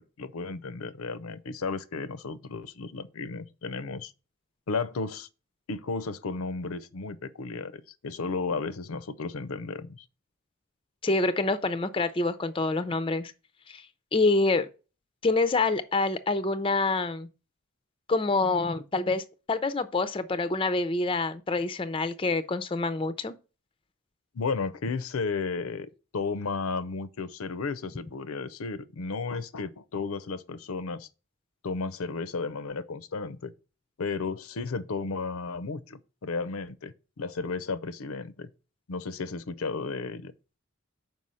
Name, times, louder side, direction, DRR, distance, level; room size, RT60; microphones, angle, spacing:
voice 1, 0.0-4.1 4.7-5.3 5.7-10.0 24.3-31.1 31.6-33.5 34.0-38.5 38.9-40.3, left 4 dB, 85° left, 0.6 m, -33 dB
voice 2, 11.0-13.3 13.7-13.8 14.1-14.7 15.2-17.3 18.1-23.4, left 3 dB, 25° left, 0.4 m, -26 dB
5.5 x 4.7 x 6.2 m
head